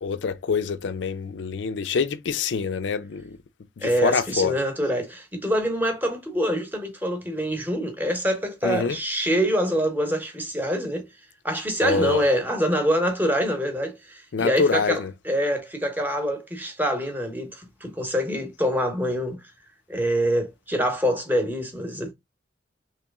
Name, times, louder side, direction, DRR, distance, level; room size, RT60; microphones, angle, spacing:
voice 1, 0.0-3.4 3.8-4.5 8.6-9.0 11.8-12.2 14.3-15.1, left 5 dB, 75° left, 0.4 m, -25 dB
voice 2, 3.8-11.0 11.4-19.4 19.9-22.1, equal, 10° right, 0.9 m, -25 dB
3.0 x 3.0 x 3.4 m
head